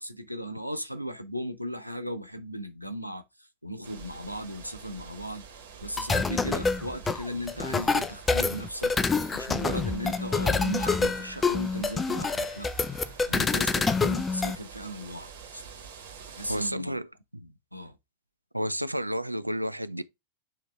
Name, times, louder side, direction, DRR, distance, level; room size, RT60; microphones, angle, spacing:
voice 1, 0.0-12.7 13.3-15.6 16.3-17.0 17.4-18.0, equal, 90° left, 0.8 m, -37 dB
sound 1, 3.8-16.7, right 6 dB, 60° right, 1.9 m, -47 dB
sound 2, 6.0-14.6, left 4 dB, 15° left, 0.5 m, -27 dB
voice 2, 16.5-17.1 18.5-20.0, equal, 85° right, 0.4 m, -30 dB
8.7 x 3.4 x 3.3 m
figure-of-eight pair, 90°, 0 cm